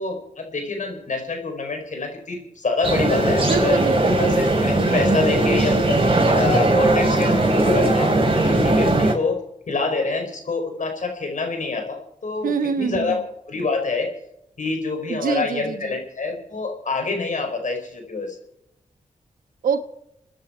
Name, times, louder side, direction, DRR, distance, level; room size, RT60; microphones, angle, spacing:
voice 1, 0.0-3.8 4.2-6.0 6.3-8.1 8.4-9.4 9.7-13.2 13.5-14.1 14.6-18.4, left 3 dB, 65° left, 3 dB, 4.8 m, -26 dB
sound 1, 2.8-9.1, right 2 dB, 40° right, 4.5 m, -19 dB
voice 2, 3.4-4.2 12.4-13.2 15.1-16.0 19.6-19.8, right 6 dB, 90° right, 8 dB, 1.3 m, -25 dB
30.0 x 10.0 x 4.5 m, 0.81 s
cardioid pair, 45°, 14 cm